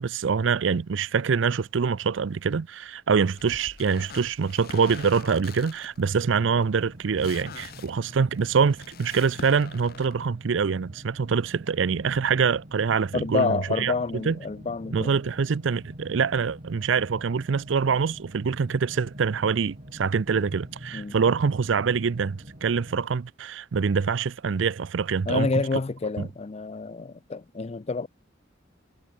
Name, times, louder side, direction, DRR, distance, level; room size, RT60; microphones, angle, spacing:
voice 1, 0.0-13.9 14.3-14.4 14.9-25.6, right 5 dB, 70° right, 0.5 m, -25 dB
sound 1, 3.4-10.1, left 5 dB, 50° left, 0.9 m, -45 dB
sound 2, 6.0-23.0, equal, 40° right, 5.2 m, -46 dB
voice 2, 13.1-15.2 20.9-21.1 25.3-28.1, left 4 dB, 35° left, 0.5 m, -28 dB
head